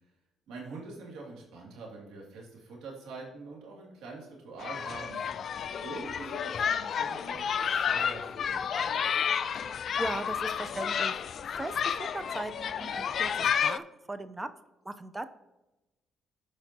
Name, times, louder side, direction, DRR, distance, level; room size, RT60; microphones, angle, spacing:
voice 1, 0.5-5.5 5.8-9.0, right 3 dB, 80° right, -3 dB, 2.5 m, -44 dB
sound 1, 4.6-13.8, left 7 dB, 60° left, 0.3 m, -31 dB
voice 2, 10.0-11.2 11.6-14.5 14.8-15.3, right 1 dB, 15° right, 11 dB, 0.6 m, -38 dB
13.5 x 5.0 x 2.9 m, 1.0 s
supercardioid pair, 70°, 0 cm